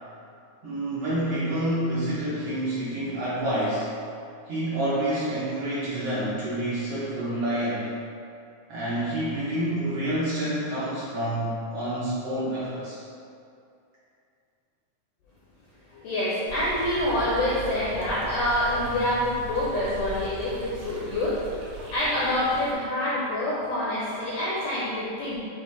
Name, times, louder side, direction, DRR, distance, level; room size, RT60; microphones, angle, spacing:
voice 1, 0.6-3.9 4.5-7.9 8.7-13.0, right 1 dB, 70° right, -10 dB, 1.4 m, -28 dB
voice 2, 15.9-21.4 21.9-25.4, left 1 dB, 80° left, -7 dB, 1.4 m, -26 dB
sound 1, 16.5-22.7, right 2 dB, 90° right, 2.3 m, -39 dB
6.9 x 2.4 x 3.1 m, 2.5 s
omnidirectional pair, 3.4 m